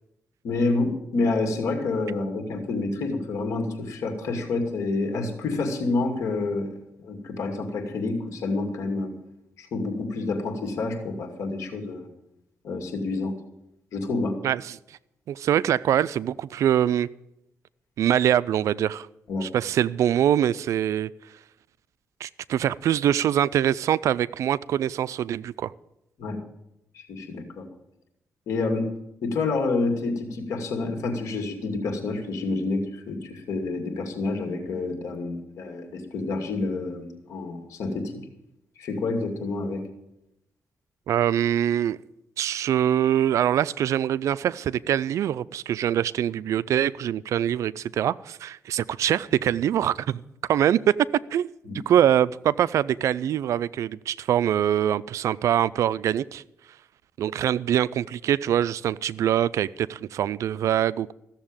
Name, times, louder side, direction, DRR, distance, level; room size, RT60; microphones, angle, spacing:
voice 1, 0.4-9.1 9.6-12.1 12.6-13.3 13.9-14.4 19.3-19.5 26.2-26.4 26.9-27.7 28.5-28.9 29.2-38.1 38.8-39.8 51.7-51.8, left 3 dB, 80° left, 2.5 m, -28 dB
voice 2, 14.4-14.8 15.3-17.1 18.0-19.1 19.4-21.1 22.2-25.7 41.1-42.0 42.4-50.2 50.5-50.9 51.3-51.5 51.9-56.4 57.2-61.1, right 10 dB, 75° right, 0.4 m, -24 dB
15.0 x 7.2 x 8.9 m
cardioid pair, 100°, 5 cm